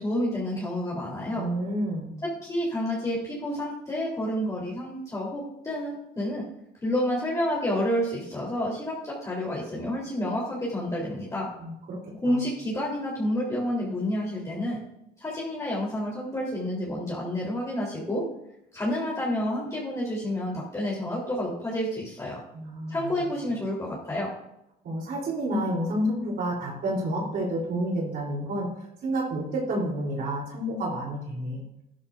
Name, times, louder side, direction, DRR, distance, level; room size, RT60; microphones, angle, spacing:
voice 1, 0.0-1.4 2.4-6.5 6.8-11.5 12.2-14.8 15.2-18.2 18.7-22.4 22.9-24.3, left 1 dB, 20° left, -5 dB, 3.5 m, -29 dB
voice 2, 1.3-2.1 11.6-12.4 22.5-23.1 24.8-28.7 29.0-31.6, right 1 dB, 65° right, -2 dB, 3.5 m, -29 dB
13.5 x 13.0 x 2.6 m, 0.88 s
cardioid pair, 110°, 17 cm